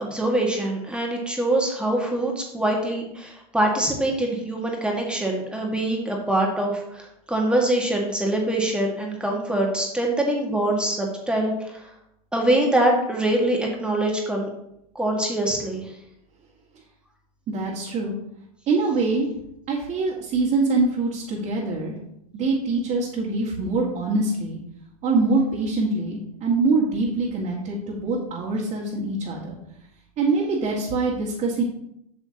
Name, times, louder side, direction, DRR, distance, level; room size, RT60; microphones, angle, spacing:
voice 1, 0.0-11.9 12.3-14.5 14.9-15.9, right 1 dB, 5° right, 0 dB, 1.7 m, -24 dB
voice 2, 17.5-18.1 18.7-19.3 19.7-21.9 22.3-24.6 25.0-29.6 30.2-31.6, right 3 dB, 40° right, -5 dB, 1.9 m, -24 dB
7.8 x 7.0 x 2.9 m, 0.79 s
hypercardioid pair, 105°, 19 cm